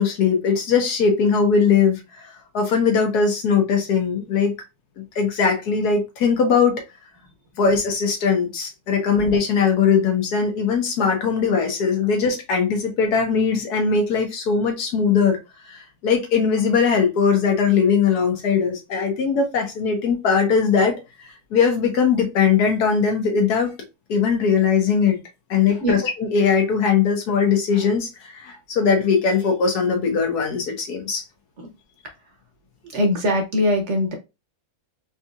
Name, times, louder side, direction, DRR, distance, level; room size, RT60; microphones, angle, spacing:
voice 1, 0.0-4.5 5.0-6.7 7.6-15.4 15.7-20.9 21.5-23.7 24.1-25.2 25.5-31.2, left 6 dB, 75° left, 1.5 m, -20 dB
voice 2, 32.8-34.1, left 1 dB, 60° right, 0.9 m, -21 dB
4.1 x 2.8 x 2.3 m
omnidirectional pair, 1.7 m